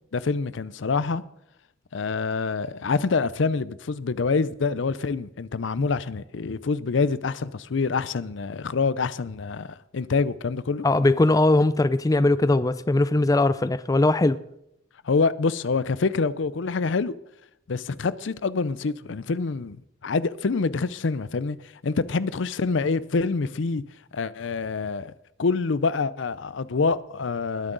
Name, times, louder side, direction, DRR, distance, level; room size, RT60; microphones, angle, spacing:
voice 1, 0.1-1.2 1.9-9.7 9.9-10.9 15.0-17.1 17.7-19.8 20.0-21.6 21.8-23.8 24.1-25.1 25.4-27.7, left 4 dB, 70° left, 0.5 m, -26 dB
voice 2, 10.8-14.4, left 2 dB, 20° left, 0.4 m, -20 dB
20.0 x 9.8 x 3.9 m
head